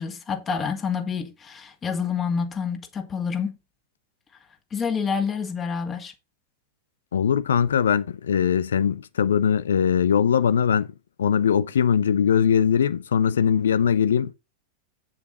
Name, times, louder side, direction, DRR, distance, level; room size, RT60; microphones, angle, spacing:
voice 1, 0.0-3.6 4.7-6.1, left 6 dB, 20° left, 2.2 m, -28 dB
voice 2, 7.1-10.9 11.2-14.3, left 8 dB, 65° left, 0.8 m, -21 dB
9.1 x 7.8 x 4.0 m
figure-of-eight pair, 90°, 0 cm